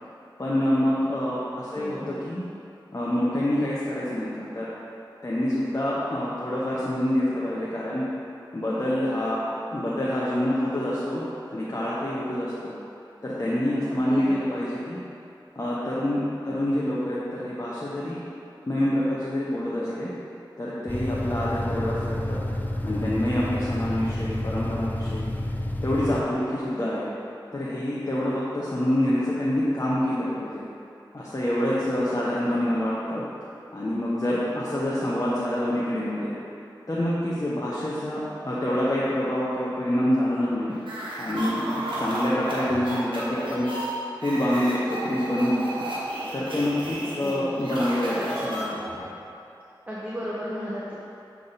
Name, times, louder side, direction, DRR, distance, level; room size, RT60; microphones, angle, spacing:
voice 1, 0.4-2.4 2.9-4.7 5.2-8.0 8.5-9.4 9.7-11.2 11.5-12.7 13.2-15.0 15.5-16.2 16.5-18.2 18.7-20.1 20.6-22.4 22.8-25.3 25.8-27.1 27.5-30.6 31.1-33.2 33.7-36.3 36.9-40.7 41.2-41.6 42.0-43.7 44.2-45.8 46.3-49.0, left 1 dB, 35° left, -8 dB, 0.9 m, -26 dB
voice 2, 1.7-2.1 13.9-14.6 16.5-16.7 47.2-47.6 49.9-50.9, equal, 20° right, -8 dB, 0.9 m, -35 dB
sound 1, 20.9-26.2, left 1 dB, 20° left, 0.4 m, -29 dB
sound 2, 40.8-49.1, right 1 dB, 75° right, 1.3 m, -33 dB
6.9 x 3.5 x 4.0 m, 2.7 s
wide cardioid pair, 45°, 8 cm